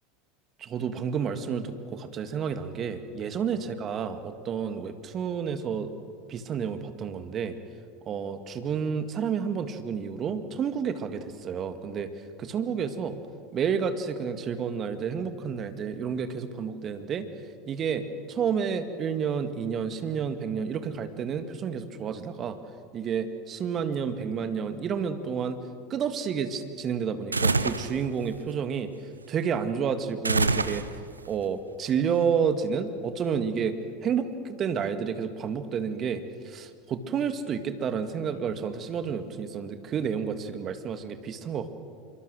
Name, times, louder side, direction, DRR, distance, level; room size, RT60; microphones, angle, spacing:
voice 1, 0.6-5.9 6.3-7.6 8.1-12.1 12.4-13.2 13.5-17.3 17.7-22.6 22.9-25.6 25.9-28.9 29.3-30.9 31.3-33.8 34.0-41.7, right 7 dB, 35° right, 9 dB, 2.0 m, -30 dB
sound 1, 27.3-27.9 30.2-31.2, right 3 dB, 85° right, 0.7 m, -25 dB
26.0 x 24.0 x 6.5 m, 2.3 s
figure-of-eight pair, 80°, 0 cm